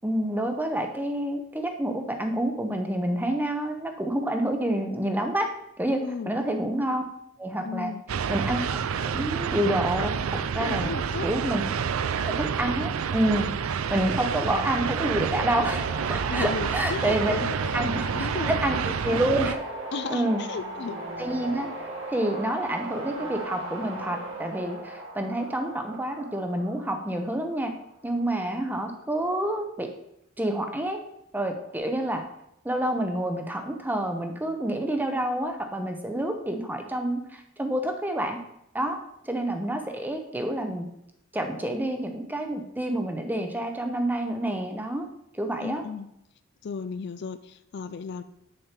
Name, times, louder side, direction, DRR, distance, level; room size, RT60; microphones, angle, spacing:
voice 1, 0.0-5.5 5.8-7.0 7.4-7.9 8.3-10.9 11.2-11.6 12.2-13.5 13.9-17.4 17.7-19.6 20.1-20.4 21.2-21.7 22.1-27.7 28.0-29.9 30.4-31.0 31.3-32.2 32.6-38.4 38.7-39.0 39.2-40.9 41.3-45.1 45.3-45.8, right 1 dB, 10° right, 5 dB, 0.8 m, -28 dB
voice 2, 6.0-6.3 7.6-8.0 10.6-11.3 16.3-17.5 17.8-18.5 19.9-21.0 45.6-46.1 46.6-48.2, left 5 dB, 55° left, 12 dB, 0.4 m, -35 dB
sound 1, 8.1-19.6, right 6 dB, 85° right, 0.4 m, -29 dB
sound 2, 15.3-27.7 31.5-31.8, right 1 dB, 60° right, 2.2 m, -37 dB
7.4 x 6.6 x 4.4 m, 0.78 s
head